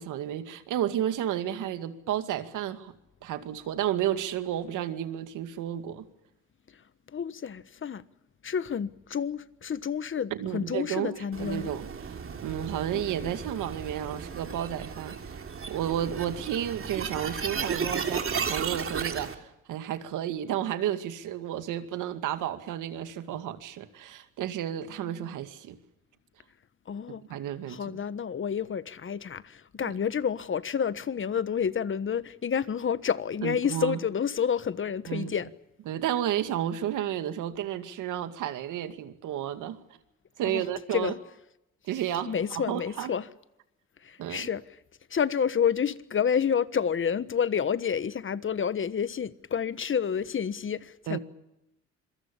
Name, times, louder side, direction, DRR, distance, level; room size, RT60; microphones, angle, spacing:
voice 1, 0.0-2.9 3.2-6.0 10.3-25.8 27.3-28.0 29.8-29.9 33.4-34.0 35.1-35.3 35.9-39.8 40.4-41.1 41.8-43.1 44.2-44.5 51.1-51.2, right 11 dB, 85° right, 2.2 m, -32 dB
voice 2, 7.1-8.0 8.4-11.7 12.9-13.4 25.0-25.2 26.9-27.2 27.7-35.5 40.4-40.6 40.9-41.1 42.2-43.3 44.0-44.6 45.1-51.2, left 7 dB, 40° left, 1.3 m, -29 dB
sound 1, 11.3-19.3, right 6 dB, 45° right, 3.1 m, -34 dB
27.0 x 23.0 x 6.9 m
cardioid pair, 90°, 30 cm